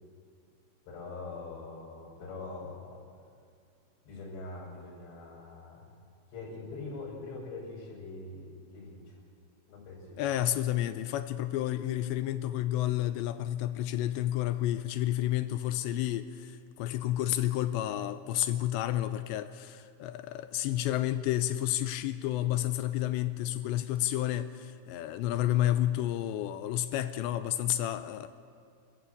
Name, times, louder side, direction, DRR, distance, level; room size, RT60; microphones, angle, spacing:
voice 1, 0.9-3.0 4.1-5.9 6.3-9.2 9.7-10.2, left 3 dB, 65° left, 7.9 m, -43 dB
voice 2, 10.2-28.3, left 13 dB, 80° left, 2.6 m, -30 dB
28.0 x 14.0 x 8.0 m
omnidirectional pair, 5.6 m